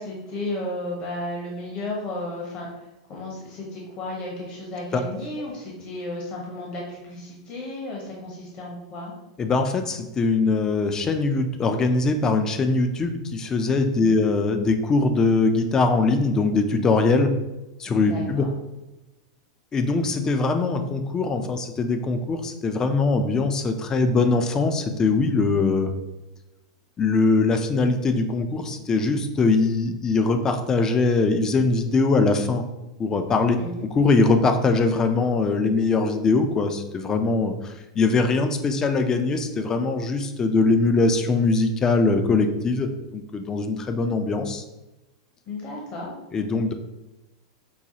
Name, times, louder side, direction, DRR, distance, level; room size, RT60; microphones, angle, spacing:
voice 1, 0.0-9.1 13.9-14.2 18.1-18.5 33.6-33.9 45.5-46.1, left 1 dB, 45° left, -2 dB, 1.0 m, -33 dB
voice 2, 9.4-17.3 17.8-18.4 19.7-25.9 27.0-32.6 33.0-44.6 46.3-46.7, left 3 dB, 25° left, 7 dB, 0.5 m, -22 dB
5.4 x 2.2 x 2.8 m, 0.99 s
hypercardioid pair, 95°, 2 cm